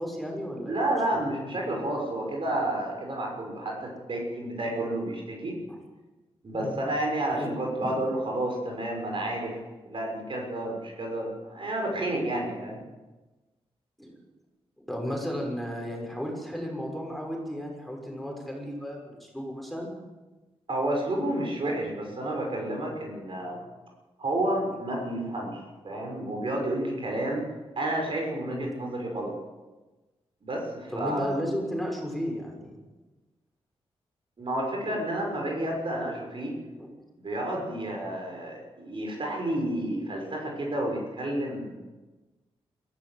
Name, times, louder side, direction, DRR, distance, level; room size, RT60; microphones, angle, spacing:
voice 1, 0.0-0.8 1.1-1.2 3.8-3.9 6.5-6.8 7.3-7.5 7.8-7.9 14.0-14.2 14.8-19.9 28.5-28.7 30.9-32.7 36.8-36.9, equal, ahead, 0 dB, 6.2 m, -34 dB
voice 2, 0.7-5.6 6.4-12.9 20.7-23.6 24.2-27.5 27.8-29.4 30.4-31.4 34.4-36.5 37.2-41.8, right 1 dB, 55° right, 1 dB, 6.4 m, -30 dB
22.0 x 15.0 x 8.2 m, 1.2 s
cardioid pair, 80°, 11 cm